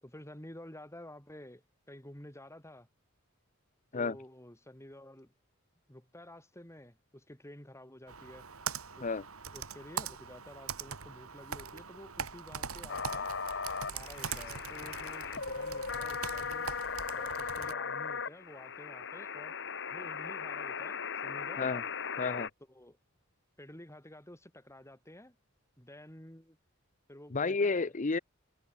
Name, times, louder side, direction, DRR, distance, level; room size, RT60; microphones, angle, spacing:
voice 1, 0.0-2.9 3.9-5.3 5.9-8.5 9.0-9.1 9.5-13.3 13.9-16.7 17.1-19.5 19.9-21.6 22.7-23.0 23.6-25.4 25.8-26.6 27.1-27.9, left 1 dB, 15° left, 5.7 m, -51 dB
Computer keyboard, 8.1-17.7, right 6 dB, 90° right, 2.1 m, -42 dB
sound 1, 12.9-22.5, left 6 dB, 60° left, 4.3 m, -38 dB
voice 2, 22.2-22.5 27.3-28.2, left 4 dB, 35° left, 0.7 m, -31 dB
head